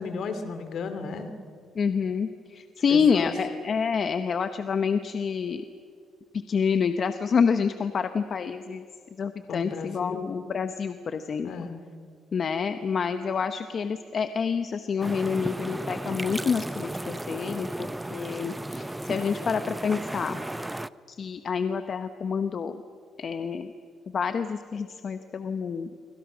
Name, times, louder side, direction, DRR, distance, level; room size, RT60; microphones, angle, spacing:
voice 1, 0.0-1.3 2.9-3.3 9.5-10.2 11.4-11.8, left 5 dB, 70° left, 9 dB, 2.6 m, -34 dB
voice 2, 1.7-5.6 6.3-8.8 9.2-11.7 12.3-20.4 21.1-22.8 23.2-23.7 24.1-25.9, left 6 dB, 50° left, 9 dB, 1.0 m, -28 dB
sound 1, 15.0-20.9, right 1 dB, 10° right, 0.6 m, -34 dB
27.5 x 24.5 x 6.2 m, 2.3 s
cardioid pair, 90°, 0 cm